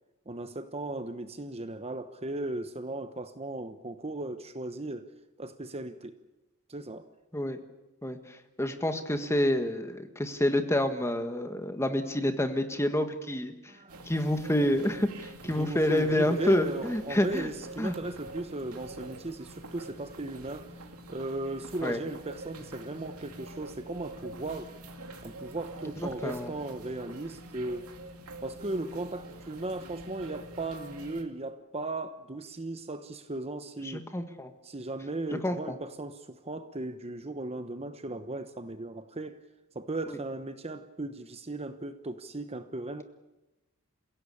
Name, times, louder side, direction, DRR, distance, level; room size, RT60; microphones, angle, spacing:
voice 1, 0.3-5.1 5.4-6.2 6.7-7.1 13.7-14.1 15.6-20.8 21.1-24.7 25.2-27.9 28.4-34.1 34.6-39.4 39.7-43.0, right 2 dB, 30° right, 1.0 m, -37 dB
voice 2, 8.0-13.7 14.1-17.5 17.8-18.0 21.8-22.0 26.0-26.5 33.8-34.5 35.4-35.8 40.1-40.2, left 1 dB, 10° left, 1.7 m, -28 dB
sound 1, 13.9-31.2, right 2 dB, 80° right, 2.6 m, -46 dB
28.0 x 16.5 x 8.6 m
head